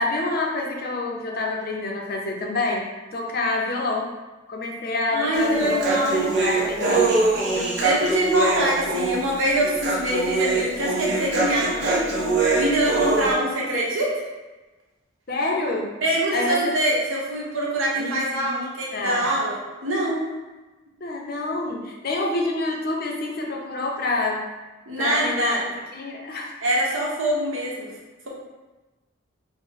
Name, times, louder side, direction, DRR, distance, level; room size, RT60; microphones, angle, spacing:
voice 1, 0.0-2.8 3.1-4.1 4.5-7.1 15.3-15.9 16.3-16.6 18.0-19.3 21.0-24.4 25.0-25.6 25.9-26.5, left 2 dB, 45° left, 0 dB, 0.5 m, -27 dB
voice 2, 5.1-6.3 6.8-7.0 7.8-12.1 12.5-14.3 16.0-20.2 24.9-25.7 26.6-27.9, right 1 dB, 75° right, -4 dB, 1.0 m, -24 dB
Human voice, 5.3-13.3, right 3 dB, 55° right, 0.8 m, -23 dB
3.9 x 2.1 x 4.0 m, 1.2 s
head